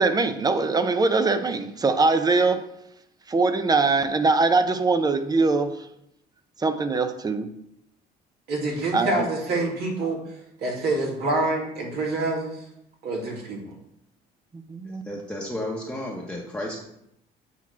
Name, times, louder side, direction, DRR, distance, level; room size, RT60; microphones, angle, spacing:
voice 1, 0.0-2.6 3.3-5.8 6.6-7.5 8.9-9.3 14.7-15.0, right 3 dB, 20° right, 9 dB, 0.6 m, -22 dB
voice 2, 8.5-10.2 10.6-12.6 13.0-13.7, right 2 dB, 75° right, -1 dB, 2.1 m, -26 dB
voice 3, 14.8-16.8, left 1 dB, 5° left, -3 dB, 1.0 m, -33 dB
8.2 x 3.0 x 6.0 m, 0.77 s
cardioid pair, 110°, 17 cm